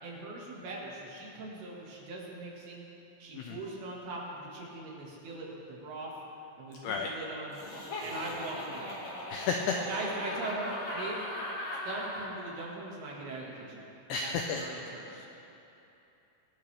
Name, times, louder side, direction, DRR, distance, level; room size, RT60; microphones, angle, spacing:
voice 1, 0.0-2.9 3.2-6.1 6.6-7.6 8.0-9.0 9.8-11.2 11.9-15.3, right 2 dB, 60° right, -4 dB, 3.6 m, -40 dB
Laughter, 7.5-12.3, left 1 dB, 65° left, 1.2 m, -39 dB
voice 2, 9.3-9.8 14.1-14.6, left 5 dB, 80° left, 2 dB, 2.4 m, -32 dB
23.5 x 12.0 x 3.4 m, 2.9 s
omnidirectional pair, 5.5 m